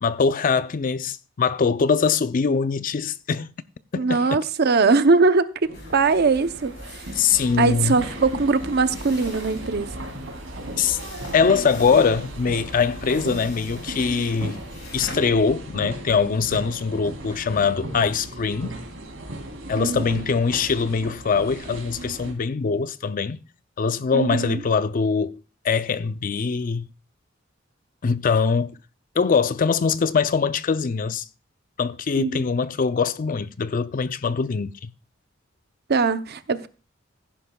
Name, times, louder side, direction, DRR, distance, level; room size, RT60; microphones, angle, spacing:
voice 1, 0.0-3.5 3.9-4.4 7.2-8.0 10.8-11.0 11.3-14.6 14.9-18.7 19.7-23.4 23.8-25.4 25.6-26.8 28.0-28.8 29.2-31.2 31.8-34.9, left 5 dB, 45° left, 0.4 m, -22 dB
voice 2, 3.9-7.1 7.6-10.0 19.8-20.2 24.1-24.6 32.2-32.4 35.9-36.7, right 4 dB, 55° right, 0.7 m, -21 dB
sound 1, 5.6-22.3, right 1 dB, 80° right, 3.1 m, -36 dB
sound 2, 5.7-15.1, left 2 dB, 65° left, 5.4 m, -44 dB
16.0 x 10.0 x 2.3 m
head